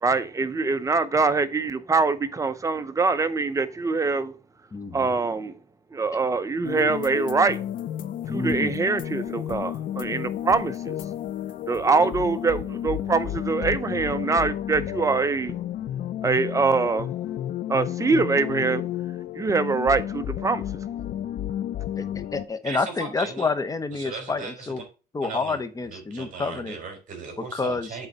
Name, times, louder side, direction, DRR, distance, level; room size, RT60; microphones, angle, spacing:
voice 1, 0.0-4.3 4.9-5.6 5.9-7.6 8.3-11.0 11.7-15.5 16.2-17.1 17.7-18.8 19.3-20.6, right 4 dB, 20° right, 0.7 m, -24 dB
voice 2, 4.7-5.1 8.3-8.7 22.0-24.8 25.1-26.8 27.5-27.9, left 3 dB, 20° left, 0.9 m, -28 dB
sound 1, 6.6-22.4, left 11 dB, 55° left, 0.5 m, -32 dB
voice 3, 22.6-23.5 23.9-24.7 25.2-28.1, right 5 dB, 50° right, 3.5 m, -38 dB
8.0 x 3.9 x 5.4 m
cardioid pair, 110°, 17 cm